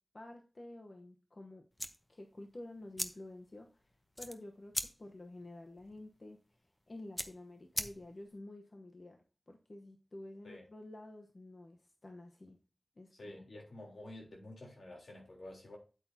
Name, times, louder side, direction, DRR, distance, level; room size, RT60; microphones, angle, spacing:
voice 1, 0.1-1.7 2.1-3.8 4.2-4.7 5.0-6.4 6.9-9.2 9.5-12.6 13.0-13.4, left 1 dB, 45° left, 1.0 m, -50 dB
sound 1, 1.7-8.4, equal, 10° left, 0.9 m, -44 dB
voice 2, 13.1-15.8, left 1 dB, 85° left, 3.5 m, -50 dB
8.6 x 8.4 x 2.8 m
wide cardioid pair, 85°, 0 cm